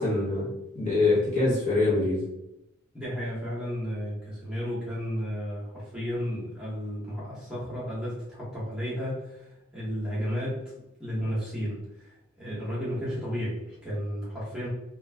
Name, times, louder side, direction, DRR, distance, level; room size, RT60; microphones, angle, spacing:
voice 1, 0.0-2.2, left 2 dB, 35° left, -6 dB, 1.2 m, -24 dB
voice 2, 2.9-10.6 11.0-12.1 12.4-14.7, equal, 5° right, -8 dB, 0.9 m, -33 dB
2.4 x 2.2 x 3.3 m, 0.89 s
head